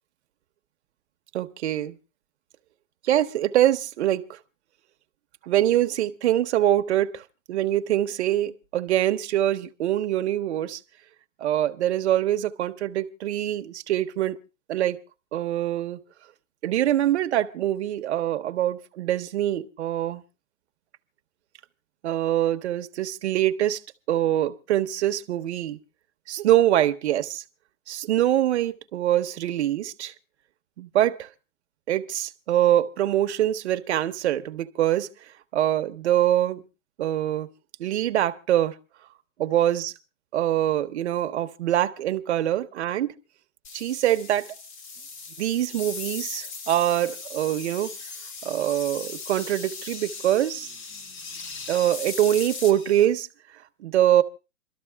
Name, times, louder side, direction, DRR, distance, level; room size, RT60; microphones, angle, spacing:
voice 1, 1.3-2.0 3.0-4.4 5.4-7.2 7.5-10.8 11.4-14.4 14.7-15.0 15.3-16.0 16.6-20.2 22.0-23.8 24.1-25.8 26.3-27.4 27.9-30.1 30.8-31.3 31.9-35.1 35.5-36.6 37.0-37.5 37.8-38.8 39.4-39.9 40.3-43.1 43.7-44.5 45.4-47.9 48.4-50.7 51.7-53.3 53.8-54.2, right 12 dB, 50° right, 0.9 m, -24 dB
sound 1, 43.6-53.0, left 4 dB, 35° left, 1.2 m, -38 dB
27.5 x 13.0 x 2.3 m
hypercardioid pair, 160°, 41 cm